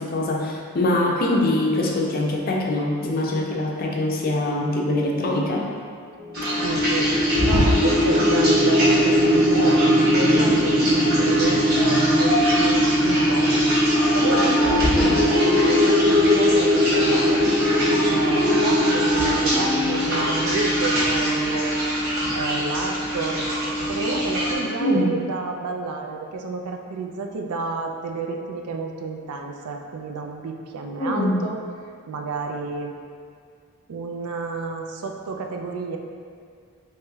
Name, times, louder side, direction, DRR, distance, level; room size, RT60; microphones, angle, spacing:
voice 1, 0.0-5.7 14.9-15.3 24.8-25.2 31.0-31.5, left 1 dB, 40° left, -1 dB, 0.4 m, -23 dB
sound 1, 6.3-24.5, equal, 45° right, 1.3 m, -23 dB
sound 2, 6.3-21.4, left 1 dB, 65° right, 1.3 m, -22 dB
voice 2, 6.6-7.1 7.4-17.4 17.7-21.9 22.3-23.5 23.8-31.6 32.1-32.9 33.9-36.0, right 4 dB, 90° right, 3 dB, 0.4 m, -30 dB
Wind instrument woodwind instrument, 14.2-20.1, left 1 dB, 20° right, 1.2 m, -28 dB
4.6 x 3.0 x 2.3 m, 2.2 s
head